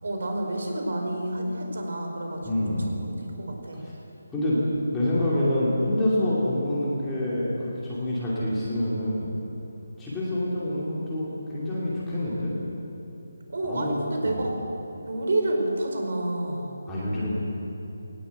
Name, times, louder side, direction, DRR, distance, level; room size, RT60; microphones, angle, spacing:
voice 1, 0.0-3.9 13.5-14.6 15.1-16.7, right 1 dB, 50° right, 2 dB, 4.9 m, -29 dB
voice 2, 2.4-2.9 3.8-3.9 4.3-4.6 4.9-9.3 10.0-12.5 13.6-14.4 16.9-17.3, left 1 dB, 5° left, -10 dB, 2.6 m, -27 dB
20.5 x 19.0 x 8.1 m, 2.9 s
hypercardioid pair, 180°, 0 cm